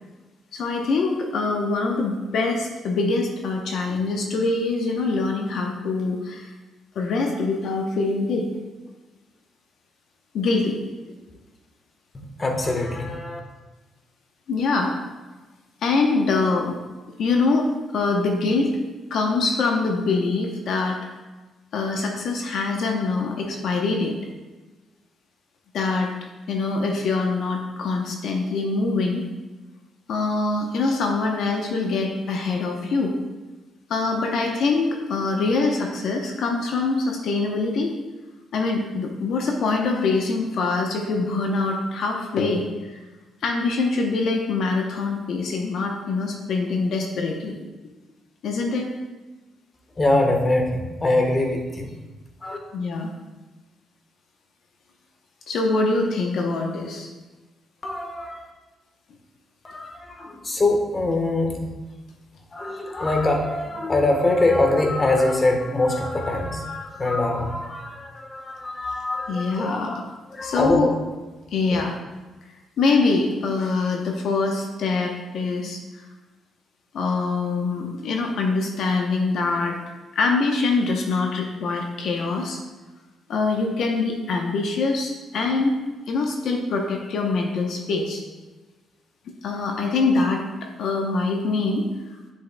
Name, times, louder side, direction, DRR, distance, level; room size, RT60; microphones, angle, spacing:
voice 1, 0.5-6.5 6.9-8.5 10.3-10.8 14.5-14.9 15.8-16.8 17.2-18.8 19.1-21.0 21.7-24.1 25.7-26.1 26.5-29.2 30.1-33.1 33.9-37.9 38.5-43.0 43.4-47.6 48.4-48.9 52.7-53.1 55.5-57.1 69.3-69.9 70.4-70.9 71.5-71.9 72.8-75.8 76.9-79.8 80.1-82.6 83.3-85.8 86.1-88.2 89.4-91.9, left 3 dB, 70° left, 2 dB, 0.8 m, -24 dB
voice 2, 12.1-13.4 50.0-51.9 52.4-52.6 57.8-58.5 59.6-61.7 62.5-69.8 70.3-70.8 71.7-71.8, left 2 dB, 30° left, 3 dB, 1.2 m, -23 dB
7.4 x 7.1 x 2.2 m, 1.2 s
cardioid pair, 90°, 0 cm